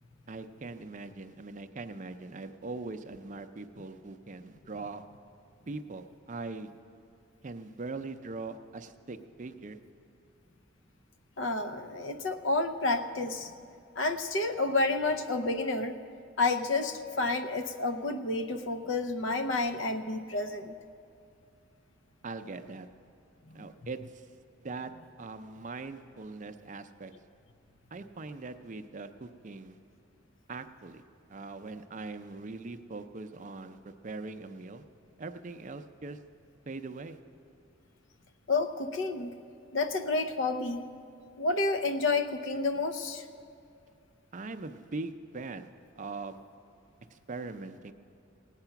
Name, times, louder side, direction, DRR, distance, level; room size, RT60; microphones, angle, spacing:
voice 1, 0.3-5.0 5.7-6.7 7.4-9.8 22.2-22.9 23.5-24.3 24.6-24.9 25.2-27.1 27.9-29.8 30.5-31.0 31.3-34.8 35.2-36.2 36.7-37.2 44.3-45.7 46.0-46.4 47.1-47.9, right 3 dB, 40° right, 9 dB, 0.5 m, -41 dB
voice 2, 11.4-13.5 14.0-16.0 16.4-20.7 23.5-23.7 38.5-39.3 39.7-40.9 41.4-43.2, left 3 dB, 70° left, 9 dB, 0.7 m, -30 dB
17.0 x 9.0 x 5.8 m, 2.5 s
head